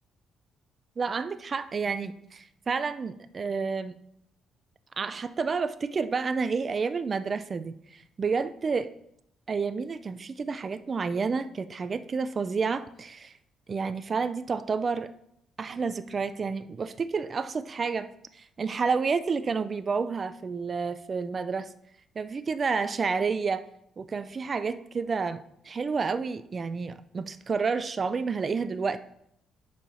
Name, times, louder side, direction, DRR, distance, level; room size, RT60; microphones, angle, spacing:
voice 1, 1.0-3.9 5.0-8.9 9.5-13.3 13.7-15.1 15.6-18.1 18.3-21.7 22.2-23.6 24.0-29.0, right 5 dB, 40° right, 13 dB, 0.4 m, -30 dB
6.8 x 4.8 x 5.5 m, 0.74 s
cardioid pair, 80°, 0 cm